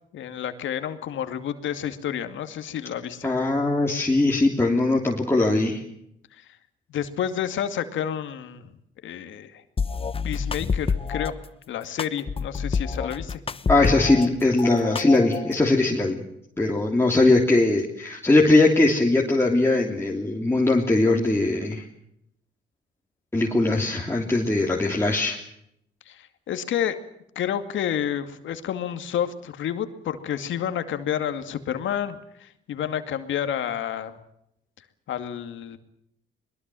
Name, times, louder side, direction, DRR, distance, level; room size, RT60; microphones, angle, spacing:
voice 1, 0.1-3.3 6.3-6.5 6.9-8.7 9.0-9.6 10.2-11.4 11.7-13.4 26.1-27.0 27.4-34.2 35.1-35.8, left 9 dB, 75° left, 9 dB, 2.3 m, -30 dB
voice 2, 3.2-5.8 13.7-16.2 16.6-21.8 23.3-25.4, left 2 dB, 10° left, -1 dB, 3.2 m, -20 dB
sound 1, 9.8-11.3 12.0-14.3 14.6-15.6, left 5 dB, 30° left, 0.9 m, -27 dB
22.0 x 21.5 x 7.7 m, 0.76 s
cardioid pair, 90°, 20 cm